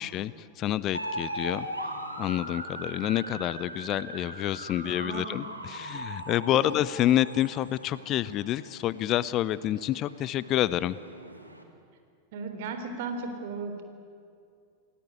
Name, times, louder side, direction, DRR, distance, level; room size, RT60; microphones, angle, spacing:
voice 1, 0.0-1.7 2.2-11.0, left 13 dB, 35° left, 19 dB, 0.6 m, -28 dB
sound 1, 0.9-11.6, right 1 dB, 85° right, 2.6 m, -39 dB
voice 2, 4.8-5.4 6.5-6.6 12.3-13.8, right 4 dB, 50° right, 6 dB, 3.6 m, -36 dB
28.5 x 18.5 x 9.5 m, 2.4 s
figure-of-eight pair, 90°, 0 cm